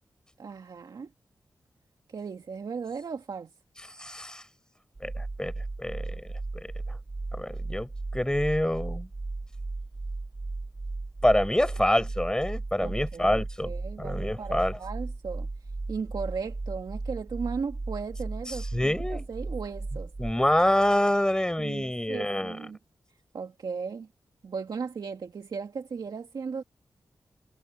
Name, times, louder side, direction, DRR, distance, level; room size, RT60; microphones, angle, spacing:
voice 1, 0.4-1.1 2.1-3.5 12.8-15.5 15.9-20.1 21.6-22.8 23.3-24.1 24.4-26.6, right 5 dB, 75° right, 2.0 m, -36 dB
voice 2, 4.0-4.4 5.0-5.5 5.8-6.2 6.9-7.0 7.3-9.1 11.2-13.7 14.0-14.8 18.5-19.2 20.2-22.6, left 1 dB, 10° left, 4.8 m, -26 dB
sound 1, 4.9-20.3, right 3 dB, 35° right, 4.0 m, -36 dB
wide cardioid pair, 80°, 7 cm